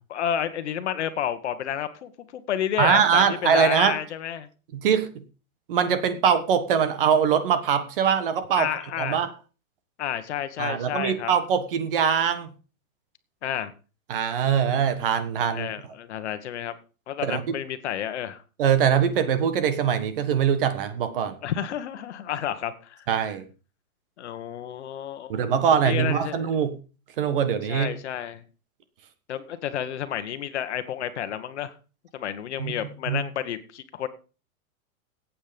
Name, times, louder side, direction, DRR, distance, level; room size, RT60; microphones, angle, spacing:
voice 1, 0.1-4.5 8.6-9.3 10.0-11.3 13.4-13.7 15.5-16.7 17.1-18.4 21.4-23.1 24.2-25.4 25.8-26.5 27.7-28.4 29.3-31.7 32.1-34.1, left 10 dB, 50° left, 10 dB, 1.4 m, -30 dB
voice 2, 2.8-4.0 4.7-5.1 5.7-8.7 9.0-9.3 10.6-12.5 14.1-15.7 17.2-17.5 18.6-21.3 23.1-23.4 25.3-26.7 27.2-27.9 32.6-32.7 33.1-33.2, right 7 dB, 40° right, 11 dB, 1.5 m, -22 dB
14.0 x 8.8 x 5.2 m, 0.36 s
hypercardioid pair, 175°, 43 cm